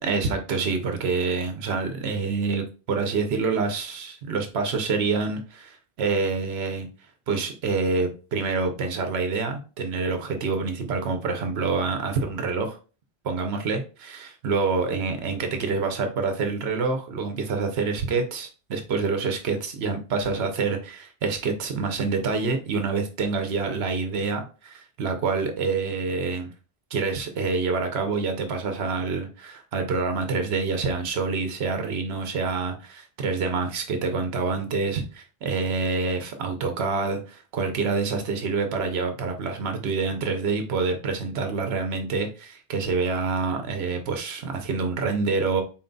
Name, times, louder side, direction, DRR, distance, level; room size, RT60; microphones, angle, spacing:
voice 1, 0.0-6.9 7.3-12.8 13.2-26.5 26.9-45.6, right 4 dB, 90° right, 5 dB, 1.0 m, -27 dB
4.3 x 3.8 x 2.2 m, 0.35 s
omnidirectional pair, 1.0 m